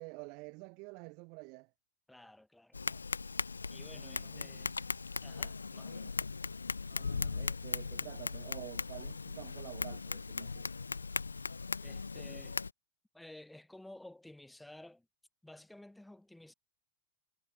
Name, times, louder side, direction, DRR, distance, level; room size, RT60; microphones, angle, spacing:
voice 1, 0.0-1.7 3.9-4.7 6.9-10.7, right 33 dB, 45° right, 5.5 m, -49 dB
voice 2, 2.1-3.0 3.7-4.8 5.2-6.2 11.8-12.6 13.1-15.1 15.4-16.5, left 1 dB, 5° left, 7.3 m, -54 dB
Tap, 2.7-12.7, left 4 dB, 75° left, 1.1 m, -38 dB
figure-of-eight pair, 90°, 0 cm